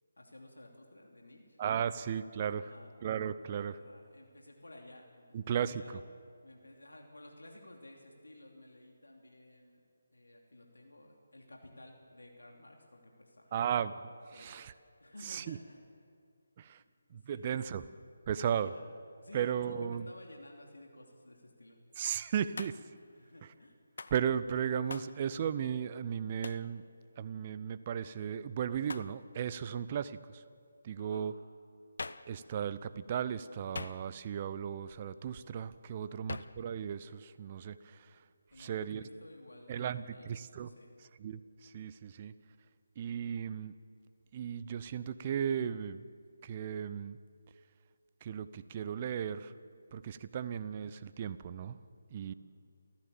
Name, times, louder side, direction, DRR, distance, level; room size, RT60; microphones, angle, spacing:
voice 1, 0.2-1.6 1.9-2.1 2.5-2.9 3.4-6.0 6.4-9.8 10.1-13.6 14.3-14.5 15.0-15.8 16.8-16.9 17.1-17.9 18.4-18.8 19.2-21.8 23.1-23.8 31.0-31.2 35.9-36.2 38.5-40.9 52.2-52.4, left 1 dB, 75° left, 1 dB, 3.0 m, -55 dB
voice 2, 1.6-2.7 3.0-3.8 5.3-6.0 13.5-13.9 14.4-14.7 15.2-15.6 16.6-16.8 17.1-17.9 18.3-18.7 19.3-20.1 22.0-22.8 24.1-26.8 27.2-30.4 30.8-31.3 32.3-38.1 38.6-39.0 39.7-40.7 41.2-42.3 43.0-43.7 44.3-46.0 46.4-47.2 48.2-49.5 49.9-51.8 52.1-52.3, right 8 dB, 30° right, 14 dB, 0.7 m, -35 dB
Hands, 22.6-23.0 24.0-24.2 24.9-25.2 26.4-26.7 28.9-29.2 32.0-32.4 33.7-34.3 36.3-36.6, left 3 dB, 55° left, 0.7 m, -43 dB
28.0 x 15.0 x 7.1 m, 2.3 s
figure-of-eight pair, 150°, 0 cm